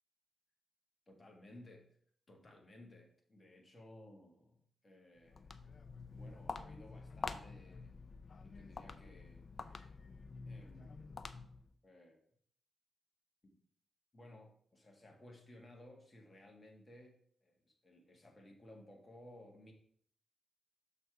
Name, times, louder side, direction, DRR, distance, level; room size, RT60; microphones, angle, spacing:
voice 1, 1.1-1.9 2.3-5.7 6.1-8.1 8.4-9.9 10.5-11.2 11.8-12.2 13.4-13.5 14.1-19.7, left 1 dB, 30° left, 1 dB, 1.5 m, -58 dB
Walk footsteps, 5.2-11.7, left 4 dB, 45° left, 0.5 m, -48 dB
6.5 x 4.1 x 4.7 m, 0.62 s
cardioid pair, 90°, 0 cm